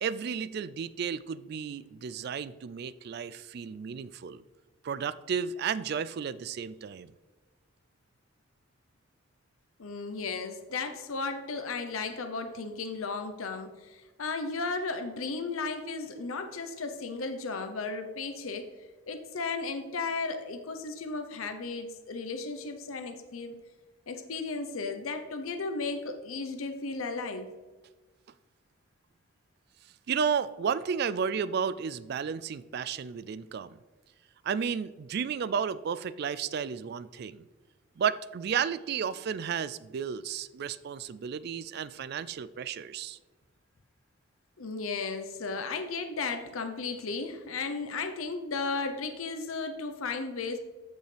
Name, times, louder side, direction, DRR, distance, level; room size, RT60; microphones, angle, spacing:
voice 1, 0.0-4.4 4.8-7.1 30.1-33.8 34.4-37.4 38.0-43.2, right 7 dB, 50° right, 16 dB, 0.3 m, -33 dB
voice 2, 9.8-18.7 19.1-23.6 24.1-27.5 44.6-50.6, left 4 dB, 90° left, 7 dB, 0.7 m, -35 dB
14.0 x 5.4 x 3.3 m, 1.2 s
head